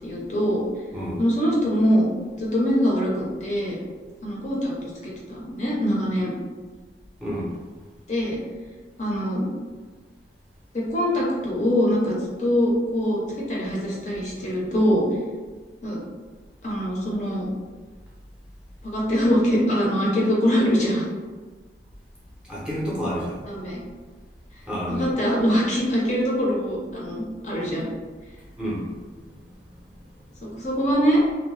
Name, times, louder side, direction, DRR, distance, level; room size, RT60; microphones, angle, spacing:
voice 1, 0.0-0.6 1.2-2.1 2.4-3.8 4.2-6.3 8.1-8.4 9.0-9.5 10.7-15.1 15.8-16.0 16.6-17.5 18.8-21.1 23.5-23.8 24.9-27.9 30.4-31.2, equal, 40° left, -4 dB, 0.6 m, -23 dB
voice 2, 7.2-7.5 22.5-23.5 24.7-25.1 28.6-28.9, equal, 5° right, -7 dB, 0.6 m, -29 dB
2.6 x 2.1 x 3.1 m, 1.4 s
head